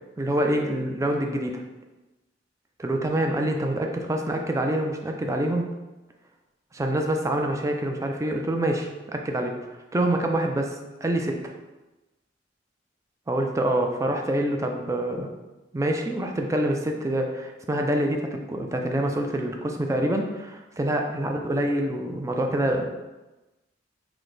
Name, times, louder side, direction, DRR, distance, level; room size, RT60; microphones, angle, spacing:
voice 1, 0.2-1.6 2.8-5.7 6.7-9.6 9.9-10.7 11.0-11.4 13.3-15.3 15.7-22.8, right 1 dB, 15° right, 2 dB, 0.4 m, -26 dB
4.9 x 2.1 x 3.9 m, 1.1 s
head